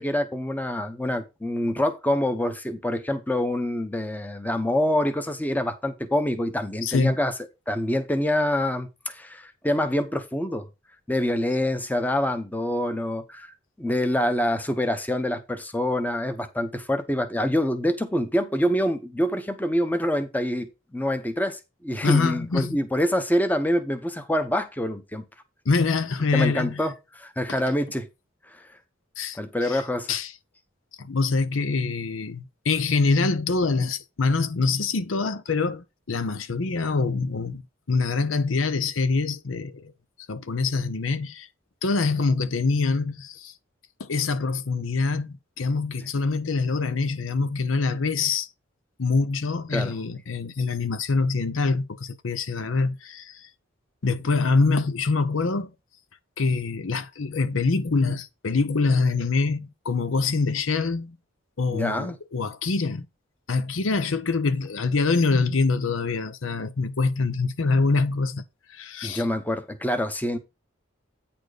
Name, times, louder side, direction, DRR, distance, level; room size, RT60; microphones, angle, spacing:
voice 1, 0.0-7.3 7.7-10.6 11.1-13.5 13.8-25.2 26.3-28.1 28.5-28.7 29.3-30.1 49.7-49.9 61.7-62.2 69.0-70.4, left 1 dB, 10° left, 0.8 m, -26 dB
voice 2, 6.8-7.2 22.0-22.8 25.7-26.8 27.5-27.6 29.2-29.8 30.1-30.3 31.0-37.6 37.9-39.9 40.3-41.5 41.8-43.5 44.0-48.5 49.0-53.5 54.0-55.7 56.4-61.2 61.6-63.1 63.5-68.4 68.7-69.3, left 4 dB, 75° left, 0.7 m, -25 dB
9.2 x 4.3 x 4.9 m
head